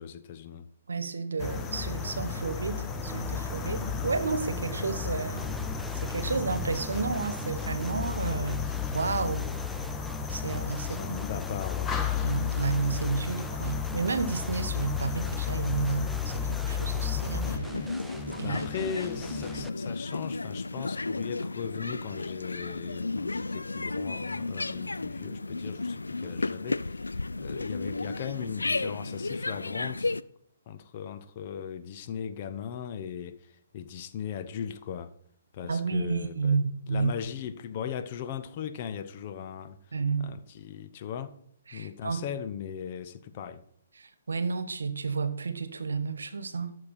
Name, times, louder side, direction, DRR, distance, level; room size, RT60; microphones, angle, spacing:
voice 1, 0.0-0.7 10.9-12.0 18.4-30.2 30.7-35.1 35.5-36.6 36.9-41.4 41.7-43.6, left 8 dB, 40° left, 0.9 m, -38 dB
voice 2, 0.9-5.5 5.9-8.7 8.9-9.5 10.3-11.2 12.2-17.5 18.4-18.6 35.7-37.1 39.9-40.3 41.7-42.2 44.0-46.7, right 4 dB, 75° right, 1.2 m, -31 dB
sound 1, 1.4-17.6, left 7 dB, 15° left, 0.9 m, -33 dB
sound 2, 5.4-19.7, right 1 dB, ahead, 0.3 m, -43 dB
sound 3, 17.4-30.2, left 3 dB, 85° left, 0.4 m, -33 dB
13.0 x 6.7 x 4.3 m
figure-of-eight pair, 130°, 0 cm